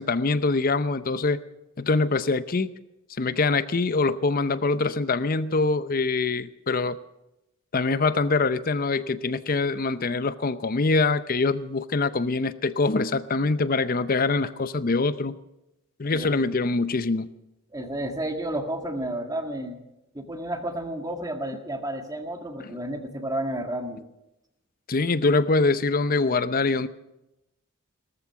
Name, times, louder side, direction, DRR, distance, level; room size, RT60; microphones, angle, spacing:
voice 1, 0.0-1.4 1.8-2.7 3.2-7.0 7.7-15.3 16.0-17.3 24.9-26.9, left 3 dB, 45° left, 14 dB, 0.7 m, -24 dB
voice 2, 16.0-16.4 17.7-19.8 20.1-24.0, right 1 dB, 15° right, 5 dB, 1.7 m, -31 dB
18.0 x 13.5 x 5.9 m, 0.91 s
head